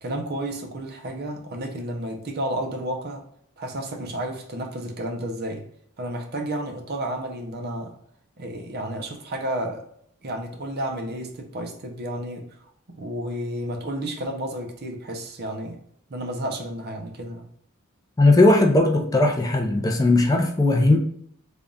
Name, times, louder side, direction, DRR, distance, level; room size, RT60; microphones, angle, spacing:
voice 1, 0.0-3.3 3.6-5.7 6.0-8.0 8.4-9.9 10.2-15.8 16.1-17.5, right 1 dB, 45° right, 0.7 m, -31 dB
voice 2, 18.2-21.0, left 2 dB, 15° left, 0.4 m, -18 dB
3.4 x 2.3 x 3.9 m
head